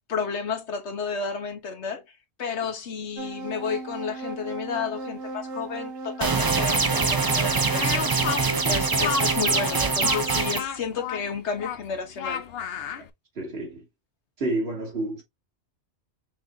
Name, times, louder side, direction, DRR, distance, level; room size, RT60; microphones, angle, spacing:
voice 1, 0.1-8.2 8.6-12.4, left 5 dB, 80° left, 1.3 m, -32 dB
sound 1, 3.2-10.6, right 2 dB, 90° right, 1.3 m, -37 dB
sound 2, 6.2-10.6, right 4 dB, 25° right, 0.5 m, -23 dB
Speech, 7.7-13.1, left 7 dB, 65° left, 0.9 m, -32 dB
voice 2, 13.4-13.9 14.4-15.2, right 2 dB, 65° right, 2.0 m, -29 dB
6.2 x 3.4 x 2.3 m
omnidirectional pair, 1.1 m